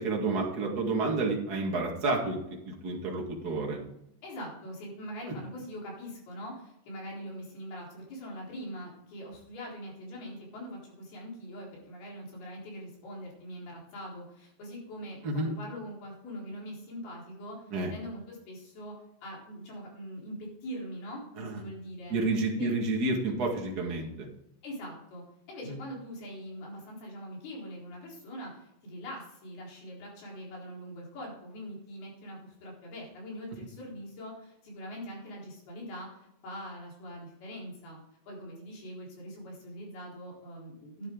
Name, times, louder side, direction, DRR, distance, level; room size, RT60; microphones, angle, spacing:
voice 1, 0.0-2.4 2.6-3.8 15.2-15.5 17.7-17.9 21.4-21.6 22.1-24.3, right 3 dB, 70° right, -1 dB, 0.9 m, -30 dB
voice 2, 4.2-22.1 22.6-22.7 24.6-36.2 36.4-38.0 38.3-41.1, equal, 55° left, -3 dB, 5.8 m, -43 dB
13.0 x 10.5 x 3.8 m, 0.81 s
omnidirectional pair, 5.3 m